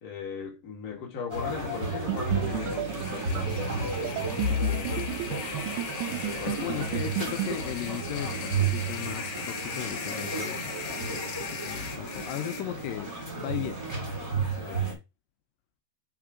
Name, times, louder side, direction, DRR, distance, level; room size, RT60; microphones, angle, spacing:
voice 1, 0.0-5.0 5.3-5.5 6.2-7.0 14.6-14.9, left 6 dB, 35° left, 1.8 m, -39 dB
sound 1, 1.3-14.9, right 2 dB, 15° right, 1.4 m, -32 dB
sound 2, 2.1-7.6, right 17 dB, 85° right, 1.7 m, -34 dB
sound 3, 2.2-12.6, left 6 dB, 65° left, 2.3 m, -39 dB
voice 2, 6.4-13.9, left 12 dB, 85° left, 2.3 m, -37 dB
5.9 x 3.6 x 4.9 m
omnidirectional pair, 4.0 m